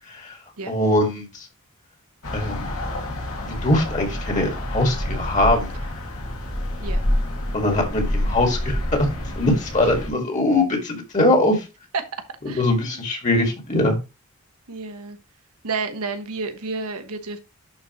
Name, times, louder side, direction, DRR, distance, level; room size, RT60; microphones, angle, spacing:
voice 1, 0.7-1.3 2.3-2.7 3.4-5.7 7.5-9.1 9.4-11.6 12.4-14.0, left 1 dB, 35° left, 3 dB, 1.9 m, -21 dB
sound 1, 2.2-10.1, left 1 dB, 75° left, 2.3 m, -27 dB
voice 2, 12.5-13.0 14.7-15.2 15.6-17.4, right 4 dB, 85° right, 8 dB, 1.2 m, -30 dB
11.0 x 4.3 x 3.0 m, 0.27 s
head